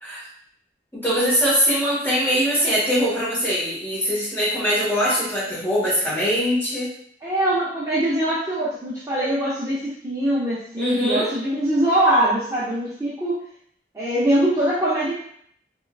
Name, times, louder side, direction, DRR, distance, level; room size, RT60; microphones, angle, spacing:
voice 1, 0.9-6.9 10.8-11.3, equal, 15° left, -8 dB, 1.2 m, -22 dB
voice 2, 7.2-13.4 13.9-15.2, right 1 dB, 15° right, -9 dB, 0.5 m, -22 dB
3.5 x 2.2 x 2.3 m, 0.66 s
head